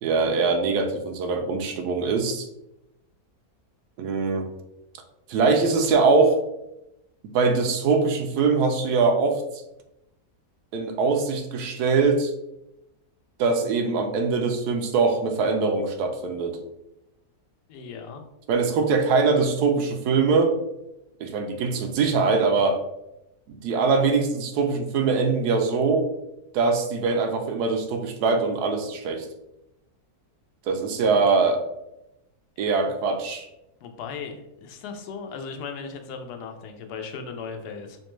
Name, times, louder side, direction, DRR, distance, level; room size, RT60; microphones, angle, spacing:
voice 1, 0.0-2.5 4.0-4.5 5.3-6.4 7.3-9.4 10.7-12.3 13.4-16.6 18.5-20.6 21.2-22.8 23.6-26.1 26.5-29.2 30.7-31.6 32.6-33.5, right 4 dB, 80° right, 5 dB, 1.2 m, -22 dB
voice 2, 17.7-18.2 32.6-32.7 33.8-38.0, left 5 dB, 85° left, 5 dB, 1.1 m, -37 dB
4.9 x 2.2 x 3.0 m, 0.88 s
omnidirectional pair, 1.7 m